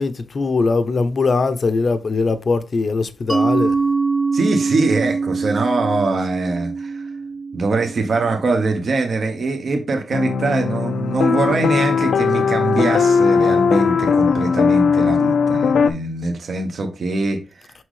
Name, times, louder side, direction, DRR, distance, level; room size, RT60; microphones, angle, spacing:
voice 1, 0.0-3.8, left 4 dB, 40° left, 0.7 m, -20 dB
Mallet percussion, 3.3-8.7, right 4 dB, 15° right, 1.0 m, -23 dB
voice 2, 4.3-7.1 7.5-17.7, right 3 dB, 50° right, 1.2 m, -22 dB
sound 1, 10.1-15.9, left 5 dB, 90° left, 0.7 m, -18 dB
6.3 x 6.1 x 3.2 m
wide cardioid pair, 160°, 0 cm